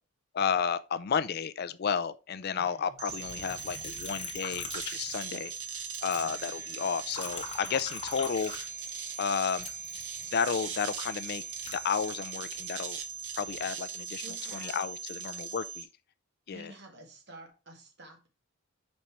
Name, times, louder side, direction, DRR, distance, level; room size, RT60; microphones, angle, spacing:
voice 1, 0.3-5.5 6.0-8.5 9.2-9.7 10.3-11.4 11.7-13.0 13.4-14.2 14.5-15.9 16.5-16.7, left 6 dB, 45° left, 0.4 m, -32 dB
voice 2, 2.5-3.0 6.2-6.5 14.2-14.9 16.5-18.3, right 1 dB, 50° right, 1.6 m, -50 dB
sound 1, 3.0-15.8, right 6 dB, 70° right, 0.9 m, -40 dB
Liquid, 3.1-5.7 5.9-9.1 9.6-12.6 13.2-13.7, left 5 dB, 25° left, 1.0 m, -44 dB
sound 2, 6.2-13.1, right 2 dB, 10° right, 2.2 m, -56 dB
5.3 x 4.3 x 4.5 m
head